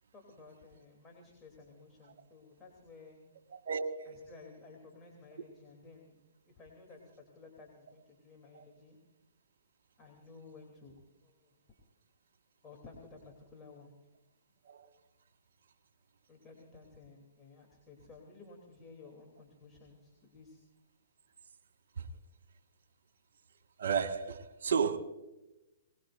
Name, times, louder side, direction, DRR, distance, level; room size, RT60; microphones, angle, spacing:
voice 1, 0.1-3.2 4.1-9.0 10.0-11.0 11.2-11.6 12.6-13.9 16.3-20.6, left 3 dB, 20° left, 3.2 m, -55 dB
voice 2, 3.6-4.1 8.5-8.7 14.6-14.9 22.0-22.1 23.8-25.0, right 6 dB, 70° right, 1.7 m, -32 dB
22.5 x 20.0 x 2.6 m
hypercardioid pair, 130°, 0 cm